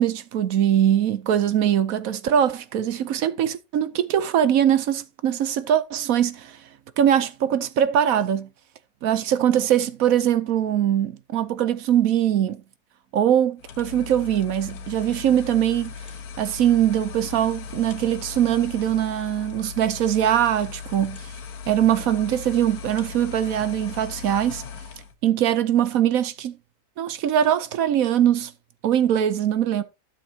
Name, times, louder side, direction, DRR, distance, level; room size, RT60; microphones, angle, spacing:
voice 1, 0.0-6.6 7.0-8.5 9.0-12.6 13.1-15.9 16.4-21.3 21.7-24.6 25.2-26.6 27.0-28.5 28.8-29.8, right 10 dB, 70° right, 1.1 m, -22 dB
sound 1, 13.6-25.1, left 6 dB, 75° left, 1.5 m, -38 dB
12.5 x 7.1 x 2.8 m
omnidirectional pair, 1.6 m